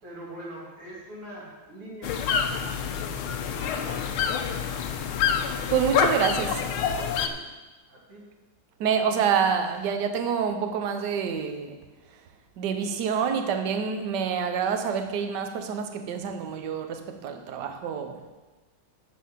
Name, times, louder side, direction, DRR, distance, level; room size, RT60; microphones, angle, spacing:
voice 1, 0.0-5.4 6.2-6.6 7.2-7.4 7.9-8.2, right 1 dB, 85° right, 3.8 m, -44 dB
sound 1, 2.0-7.3, left 7 dB, 80° left, 1.6 m, -27 dB
voice 2, 5.7-6.5 8.8-11.8 12.6-18.2, right 7 dB, 60° right, 1.3 m, -27 dB
12.5 x 4.2 x 7.6 m
omnidirectional pair, 2.4 m